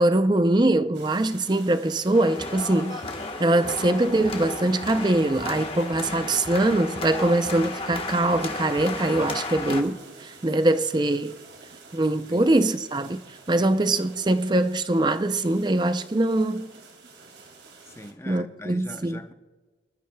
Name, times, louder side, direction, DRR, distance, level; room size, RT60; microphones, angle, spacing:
voice 1, 0.0-3.0 3.4-11.4 11.9-13.2 13.5-16.7 18.3-19.2, right 2 dB, 25° right, 0.5 m, -23 dB
sound 1, 0.9-18.1, right 4 dB, 70° right, 2.2 m, -49 dB
sound 2, 2.1-9.8, left 3 dB, 30° left, 1.2 m, -34 dB
voice 2, 12.3-12.6 13.6-13.8 17.8-19.3, left 1 dB, 15° left, 0.8 m, -42 dB
29.0 x 12.0 x 2.3 m
head